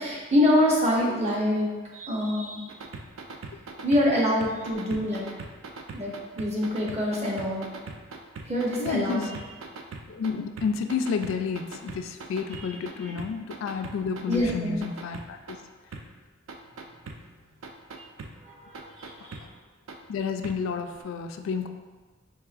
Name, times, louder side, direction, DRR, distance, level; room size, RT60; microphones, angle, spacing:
voice 1, 0.0-2.7 3.8-5.3 5.9-7.7 8.5-9.3 12.9-13.1 14.3-14.8 18.4-19.4, left 1 dB, 35° right, -3 dB, 0.8 m, -25 dB
sound 1, 2.7-10.3 10.6-12.9 13.2-15.5 15.9-16.0 16.5-17.2 17.6-18.3 18.7-19.4 19.9-20.0 20.4-20.5 21.0-21.1, right 4 dB, 85° right, 0.4 m, -39 dB
voice 2, 8.8-9.3 10.1-15.6 19.2-19.3 20.1-21.7, left 5 dB, 90° left, 6 dB, 0.3 m, -30 dB
4.6 x 3.2 x 2.4 m, 1.4 s
head